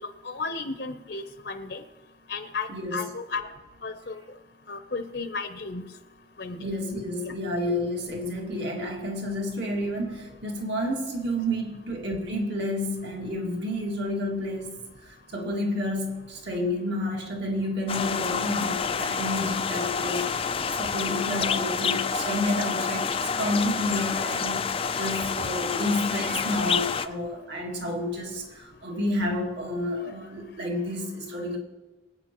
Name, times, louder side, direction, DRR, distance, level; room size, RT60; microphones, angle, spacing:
voice 1, 0.2-1.8 2.3-3.4 3.8-4.2 4.7-5.8 6.4-6.6, left 4 dB, 55° left, 8 dB, 0.7 m, -33 dB
voice 2, 2.7-3.0 6.6-31.6, left 1 dB, 60° right, -1 dB, 2.1 m, -30 dB
sound 1, 17.9-27.1, left 6 dB, 30° left, 0.3 m, -28 dB
24.0 x 8.9 x 3.0 m, 1.1 s
head